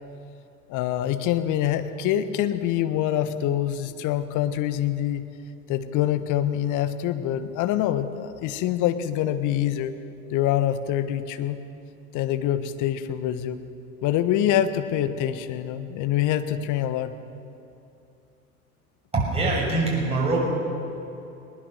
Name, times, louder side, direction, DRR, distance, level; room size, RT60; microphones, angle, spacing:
voice 1, 0.7-5.3 5.7-9.9 10.3-11.6 12.1-13.6 14.0-17.1, left 11 dB, 40° left, 10 dB, 1.4 m, -25 dB
voice 2, 19.1-20.4, right 3 dB, 15° right, -3 dB, 6.6 m, -23 dB
20.5 x 20.0 x 6.7 m, 2.7 s
figure-of-eight pair, 80°, 46 cm